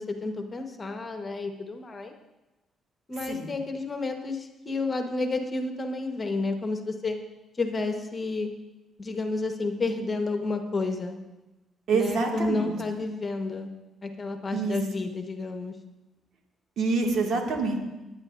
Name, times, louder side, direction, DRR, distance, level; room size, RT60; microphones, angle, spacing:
voice 1, 0.0-2.1 3.1-7.1 7.6-8.5 9.0-11.2 11.9-13.7 14.0-15.7, left 3 dB, 35° left, 4 dB, 1.3 m, -30 dB
voice 2, 11.9-12.7 14.5-14.8 16.8-17.8, right 4 dB, 65° right, 0 dB, 2.1 m, -26 dB
19.0 x 9.5 x 2.6 m, 1.0 s
cardioid pair, 80°, 0 cm